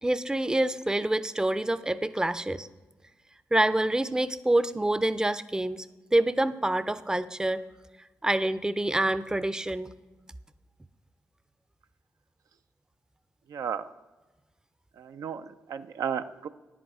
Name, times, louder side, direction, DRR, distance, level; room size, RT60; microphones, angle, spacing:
voice 1, 0.0-2.7 3.5-5.9 6.1-7.6 8.2-9.9, right 1 dB, 10° right, 14 dB, 0.5 m, -26 dB
voice 2, 13.5-13.9 14.9-16.5, right 7 dB, 70° right, 9 dB, 0.4 m, -34 dB
10.0 x 7.9 x 4.8 m, 1.2 s
supercardioid pair, 50°, 6 cm